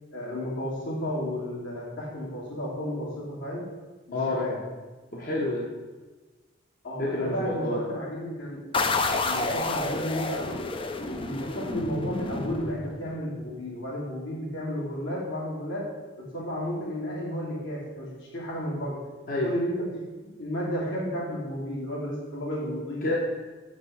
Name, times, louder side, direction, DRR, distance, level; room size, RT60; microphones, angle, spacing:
voice 1, 0.1-3.7 4.1-4.6 6.8-8.6 9.2-10.6 11.0-15.9 16.2-19.0 19.4-23.1, equal, 75° left, -6 dB, 3.0 m, -32 dB
voice 2, 4.1-4.5 5.1-5.7 7.0-7.8 19.3-19.5 23.0-23.2, left 2 dB, 45° left, -3 dB, 1.1 m, -28 dB
sound 1, 8.7-13.3, left 3 dB, 25° left, 0.5 m, -30 dB
6.4 x 5.2 x 7.0 m, 1.3 s
head